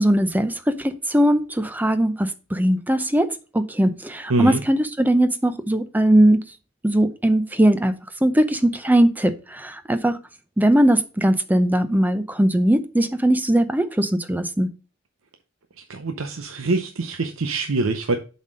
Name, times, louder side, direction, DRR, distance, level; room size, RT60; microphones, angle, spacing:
voice 1, 0.0-6.4 6.8-7.9 8.2-10.2 10.6-14.7, right 1 dB, 10° right, 0.6 m, -20 dB
voice 2, 15.9-18.1, right 3 dB, 90° right, 0.7 m, -24 dB
7.3 x 4.2 x 5.1 m
head